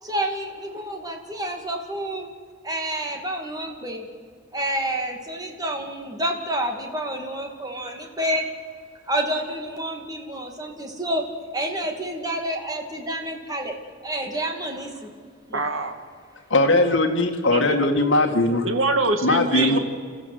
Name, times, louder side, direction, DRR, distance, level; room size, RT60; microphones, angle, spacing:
voice 1, 0.0-2.3 2.6-4.1 4.5-8.4 9.1-11.2 11.5-13.7 14.0-15.1 15.5-15.6, right 1 dB, 20° right, 3 dB, 2.3 m, -29 dB
voice 2, 15.5-15.9 17.5-17.6 18.6-19.8, right 3 dB, 85° right, 6 dB, 2.2 m, -23 dB
voice 3, 16.5-18.7 19.2-19.8, left 2 dB, 65° left, 3 dB, 2.1 m, -20 dB
30.0 x 14.5 x 8.0 m, 2.1 s
head